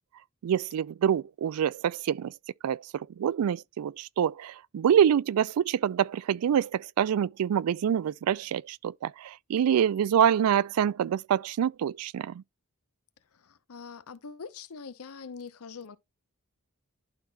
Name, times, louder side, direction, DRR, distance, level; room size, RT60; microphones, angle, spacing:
voice 1, 0.4-2.3 2.6-12.4, right 9 dB, 75° right, 0.3 m, -26 dB
voice 2, 13.3-16.0, left 5 dB, 75° left, 0.7 m, -43 dB
11.5 x 4.0 x 2.2 m
head